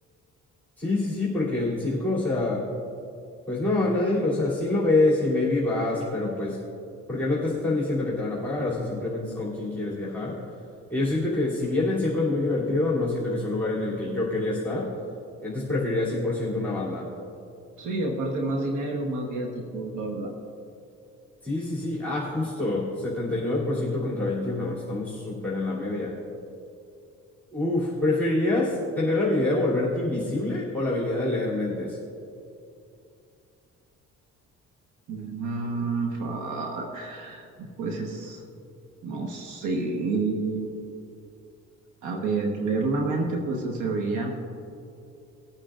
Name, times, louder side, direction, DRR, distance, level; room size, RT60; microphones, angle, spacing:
voice 1, 0.8-2.7 3.5-6.6 7.1-10.4 10.9-14.9 15.4-17.1 21.4-26.2 27.5-32.0, left 2 dB, 5° left, -8 dB, 2.9 m, -26 dB
voice 2, 17.8-20.3 35.1-38.4 39.0-40.8 42.0-44.3, right 3 dB, 80° right, 1 dB, 1.3 m, -29 dB
20.5 x 8.9 x 2.5 m, 2.6 s
cardioid pair, 90°, 30 cm